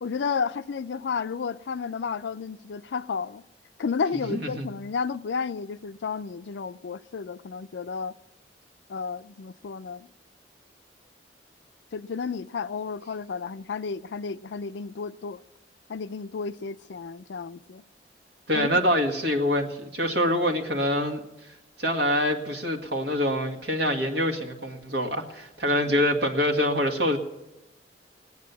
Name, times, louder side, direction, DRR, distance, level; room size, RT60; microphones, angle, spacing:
voice 1, 0.0-3.4 3.8-8.1 8.9-10.1 11.9-15.4 15.9-17.8 18.6-18.8 25.9-26.0, left 5 dB, 80° left, 0.4 m, -32 dB
voice 2, 4.1-4.7 18.5-21.2 21.5-27.2, equal, 75° right, 2.0 m, -25 dB
18.5 x 9.6 x 7.1 m
head